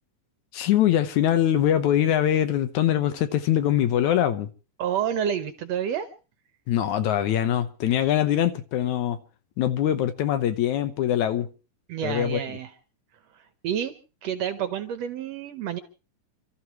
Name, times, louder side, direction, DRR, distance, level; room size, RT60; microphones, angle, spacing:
voice 1, 0.5-4.5 6.7-9.2 9.6-11.5 12.0-12.4, left 11 dB, 75° left, 2.2 m, -23 dB
voice 2, 4.8-6.1 11.9-12.7 13.3-13.9 14.2-15.8, right 9 dB, 70° right, 1.7 m, -29 dB
30.0 x 13.0 x 3.0 m
omnidirectional pair, 3.6 m